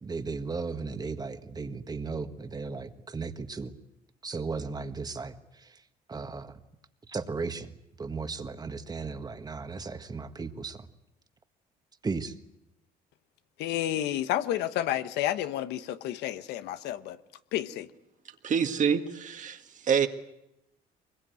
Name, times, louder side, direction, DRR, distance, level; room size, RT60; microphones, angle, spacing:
voice 1, 0.0-3.7 4.2-5.3 5.6-5.7 6.1-6.6 7.1-10.8 12.0-12.3, right 4 dB, 25° right, 1.6 m, -35 dB
voice 2, 13.6-17.2 17.5-17.9, left 12 dB, 85° left, 1.1 m, -30 dB
voice 3, 18.4-20.1, right 7 dB, 50° right, 1.9 m, -26 dB
23.5 x 21.5 x 9.3 m
cardioid pair, 110°, 17 cm